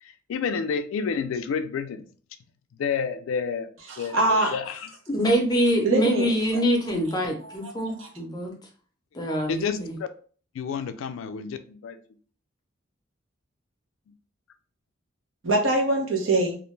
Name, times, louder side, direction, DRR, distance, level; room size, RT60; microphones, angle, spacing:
voice 1, 0.0-2.1 2.8-4.9 9.5-10.1 10.5-12.0, left 6 dB, 80° left, 0.3 m, -30 dB
voice 2, 3.9-4.5 5.8-6.3 7.4-7.7 8.0-8.1 15.4-16.6, right 2 dB, 70° right, 0.8 m, -23 dB
voice 3, 5.1-8.5 9.1-9.9, equal, 20° left, 0.5 m, -24 dB
2.4 x 2.1 x 3.1 m
head